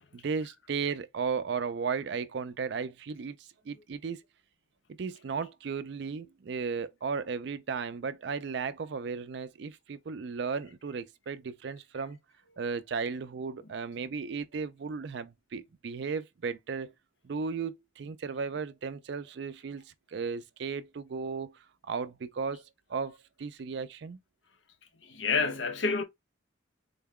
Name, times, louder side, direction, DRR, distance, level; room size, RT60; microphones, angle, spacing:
voice 1, 0.1-4.2 4.9-12.2 12.6-16.9 17.2-24.2, right 5 dB, 60° right, 0.4 m, -35 dB
voice 2, 25.0-26.0, left 4 dB, 70° left, 0.7 m, -28 dB
3.8 x 2.2 x 3.5 m
head